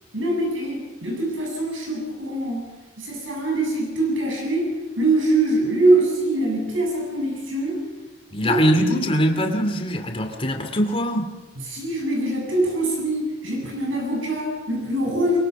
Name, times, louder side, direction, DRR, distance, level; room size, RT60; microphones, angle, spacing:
voice 1, 0.1-2.7 3.0-7.8 8.4-8.6 8.9-9.0 11.6-15.4, right 2 dB, 75° right, 7.8 m, -23 dB
voice 2, 8.3-11.3, equal, 30° left, 2.6 m, -22 dB
23.5 x 23.5 x 6.1 m
head